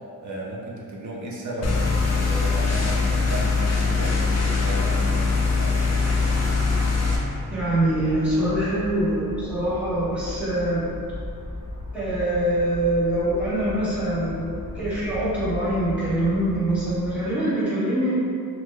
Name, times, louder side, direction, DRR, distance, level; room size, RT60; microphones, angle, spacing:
voice 1, 0.2-6.0, right 1 dB, 50° right, -3 dB, 0.5 m, -34 dB
sound 1, 1.6-7.2, left 4 dB, 45° left, 0.4 m, -22 dB
sound 2, 5.9-17.1, left 2 dB, 35° right, 1.5 m, -37 dB
voice 2, 7.5-10.8 11.9-18.1, right 1 dB, 5° right, -13 dB, 1.0 m, -24 dB
2.9 x 2.1 x 3.5 m, 2.4 s
wide cardioid pair, 160°, 38 cm